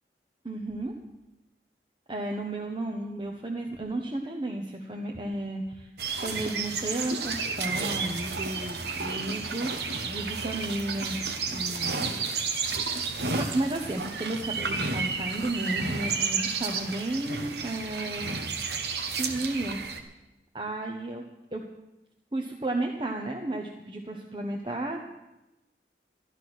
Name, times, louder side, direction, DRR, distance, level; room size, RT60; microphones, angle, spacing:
voice 1, 0.4-0.9 2.1-5.9 6.2-12.1 13.3-18.3 19.2-19.9 20.5-21.2 21.5-21.6 22.3-25.0, right 2 dB, 25° right, 1 dB, 1.0 m, -33 dB
sound 1, 6.0-20.0, right 4 dB, 70° right, 1.3 m, -31 dB
12.5 x 11.5 x 6.3 m, 0.98 s
head